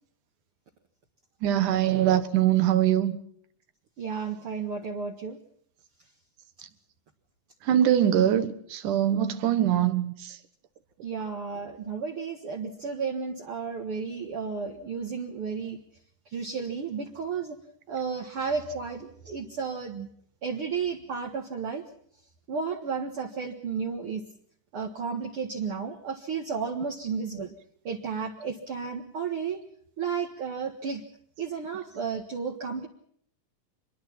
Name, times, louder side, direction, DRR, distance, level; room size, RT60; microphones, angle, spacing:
voice 1, 1.4-3.2 7.7-10.1, right 11 dB, 80° right, 2.9 m, -23 dB
voice 2, 4.0-5.4 11.0-15.8 16.3-17.6 17.9-20.1 20.4-21.8 22.5-24.2 24.7-27.5 27.8-29.6 30.0-31.0 31.4-32.9, right 5 dB, 50° right, 2.2 m, -33 dB
26.0 x 21.5 x 5.9 m
omnidirectional pair, 3.5 m